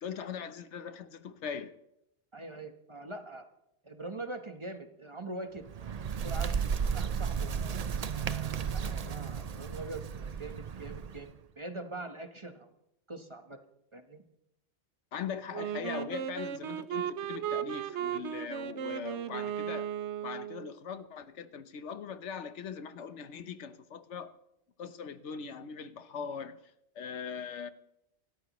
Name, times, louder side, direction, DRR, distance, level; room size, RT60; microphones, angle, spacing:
voice 1, 0.0-1.7 15.1-19.9 20.2-24.3 24.8-26.6 26.9-27.7, left 6 dB, 75° left, 11 dB, 1.2 m, -40 dB
voice 2, 2.3-3.4 3.8-5.6 6.2-7.5 8.1-11.3 11.6-12.7 13.1-13.6 13.9-14.2, right 2 dB, 25° right, 6 dB, 1.1 m, -43 dB
Bird, 5.6-11.3, right 6 dB, 45° right, 0.5 m, -34 dB
Wind instrument woodwind instrument, 15.5-20.7, right 10 dB, 80° right, 1.0 m, -36 dB
26.5 x 13.5 x 3.0 m, 0.82 s
omnidirectional pair, 1.2 m